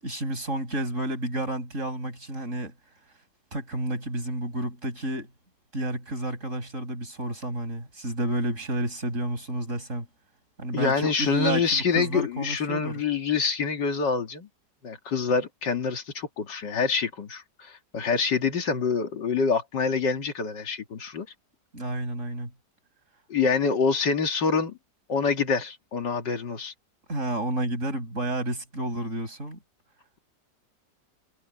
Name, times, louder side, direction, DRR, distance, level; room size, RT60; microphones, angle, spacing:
voice 1, 0.0-2.7 3.5-5.3 5.7-10.1 10.6-13.0 21.7-22.5 27.1-29.6, right 1 dB, 40° right, 6.6 m, -30 dB
voice 2, 10.7-14.5 14.8-21.3 23.3-24.8 25.1-26.7, left 5 dB, 75° left, 2.6 m, -26 dB
omnidirectional pair, 1.9 m